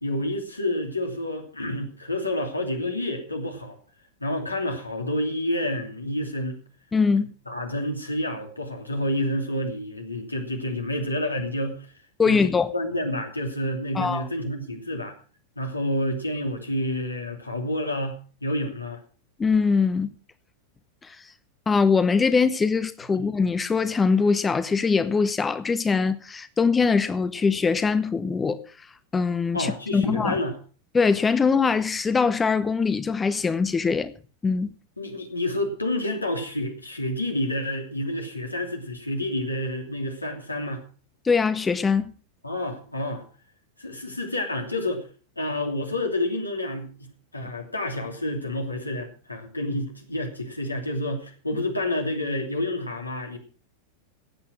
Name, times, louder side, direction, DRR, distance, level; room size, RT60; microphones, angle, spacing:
voice 1, 0.0-3.8 4.2-6.6 7.5-11.9 12.2-12.4 12.7-15.1 15.6-19.0 23.1-23.2 29.5-30.6 35.0-40.8 42.4-43.2 43.8-45.1 45.4-53.4, left 1 dB, 85° left, 2.7 m, -29 dB
voice 2, 6.9-7.3 12.2-12.7 13.9-14.3 19.4-20.1 21.0-21.3 21.7-28.9 29.1-30.4 30.9-34.1 34.4-34.7 41.2-42.1, left 5 dB, 15° left, 0.7 m, -22 dB
16.0 x 8.7 x 6.0 m
figure-of-eight pair, 90°, 0 cm